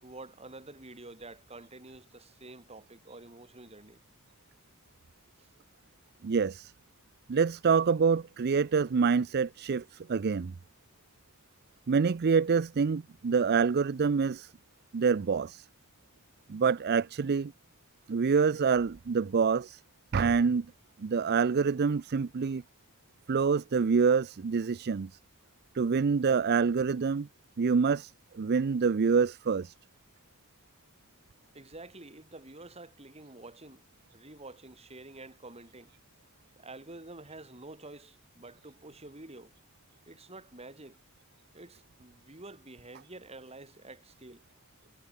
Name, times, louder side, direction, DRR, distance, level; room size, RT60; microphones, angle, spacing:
voice 1, 0.0-4.0 5.4-5.5 31.5-33.8 34.1-35.9 36.5-39.5 40.0-41.0 41.5-44.4, right 2 dB, 30° right, 3.1 m, -48 dB
voice 2, 6.2-6.7 7.3-10.5 11.9-14.5 14.9-15.7 16.5-17.5 18.1-19.8 20.1-20.7 21.0-22.6 23.3-25.1 25.7-27.3 27.6-29.7, right 5 dB, 50° right, 0.4 m, -26 dB
head